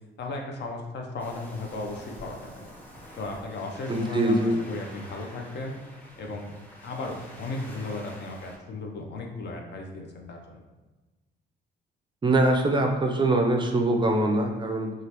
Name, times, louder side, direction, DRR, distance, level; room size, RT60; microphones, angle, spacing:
voice 1, 0.2-2.7 3.2-4.4 4.7-5.8 6.2-6.5 6.8-10.6, left 3 dB, 60° left, 2 dB, 0.6 m, -35 dB
Waves surf, 1.2-8.6, equal, 10° left, 0.7 m, -47 dB
voice 2, 3.9-4.6 12.2-14.9, right 2 dB, 25° right, 3 dB, 0.4 m, -23 dB
2.8 x 2.4 x 3.2 m, 1.2 s
cardioid pair, 90°, 20 cm